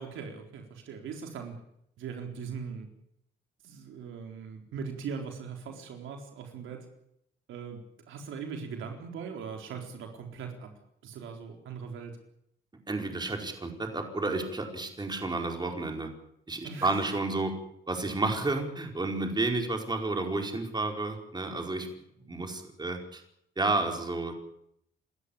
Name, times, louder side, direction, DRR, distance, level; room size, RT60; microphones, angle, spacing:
voice 1, 0.0-1.6 2.0-2.9 3.6-6.8 7.5-10.7 11.0-12.2 16.6-17.0, right 6 dB, 80° right, 3 dB, 4.1 m, -40 dB
voice 2, 12.9-16.1 16.5-17.5 17.9-21.9 22.2-23.2 23.6-24.4, right 2 dB, 20° right, 3 dB, 4.7 m, -31 dB
28.0 x 13.5 x 8.6 m, 0.74 s
cardioid pair, 90°, 20 cm